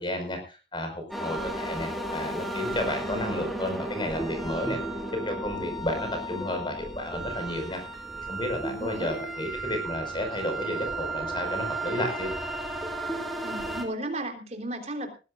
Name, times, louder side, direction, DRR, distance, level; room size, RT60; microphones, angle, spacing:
voice 1, 0.0-4.8 5.2-7.8 8.2-12.3, left 1 dB, 25° left, 5 dB, 5.0 m, -32 dB
sound 1, 1.1-13.8, right 2 dB, ahead, 2.5 m, -34 dB
voice 2, 3.0-3.6 8.6-9.1 13.4-15.1, right 1 dB, 40° right, 3 dB, 3.5 m, -35 dB
20.0 x 16.0 x 2.5 m, 0.33 s
head